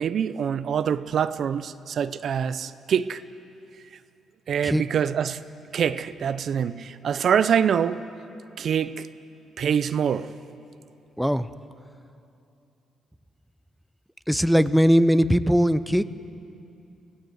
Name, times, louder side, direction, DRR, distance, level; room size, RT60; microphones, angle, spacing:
voice 1, 0.0-3.2 4.5-5.4 5.7-8.0 8.6-9.1 9.6-10.3, right 8 dB, 60° right, 0.6 m, -25 dB
voice 2, 11.2-11.5 14.3-16.1, equal, ahead, 0.6 m, -20 dB
24.0 x 16.0 x 8.0 m
cardioid pair, 90°, 0 cm